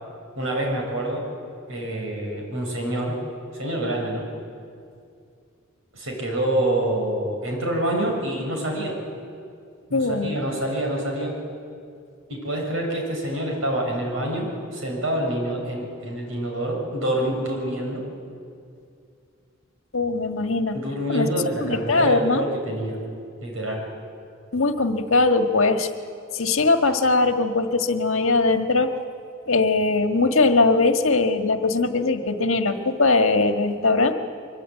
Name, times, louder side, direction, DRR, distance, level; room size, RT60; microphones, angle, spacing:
voice 1, 0.3-1.2 1.7-3.2 3.5-4.3 5.9-9.0 9.9-11.3 12.3-18.0 20.7-23.0 23.4-23.8, right 1 dB, 70° right, 1 dB, 7.0 m, -26 dB
voice 2, 9.9-10.4 19.9-20.8 21.1-21.3 21.6-22.4 24.5-25.9 26.3-28.9 29.5-34.1, left 3 dB, 65° left, 6 dB, 1.5 m, -20 dB
23.5 x 23.0 x 9.1 m, 2.4 s
head